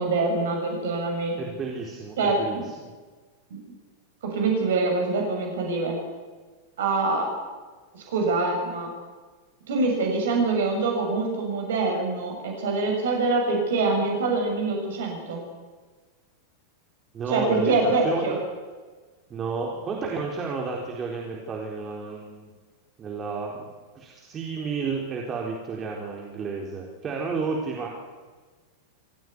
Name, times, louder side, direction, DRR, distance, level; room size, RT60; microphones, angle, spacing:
voice 1, 0.0-1.3 2.2-2.7 3.5-3.6 4.2-6.0 6.8-7.3 7.9-8.9 9.7-15.4 17.3-18.4, right 3 dB, 60° right, 1 dB, 6.9 m, -25 dB
voice 2, 1.4-2.9 17.1-18.4 19.3-22.5 23.0-23.7 23.9-27.9, right 4 dB, 25° right, -1 dB, 4.2 m, -31 dB
26.0 x 16.0 x 9.6 m, 1.4 s
figure-of-eight pair, 90°, 0 cm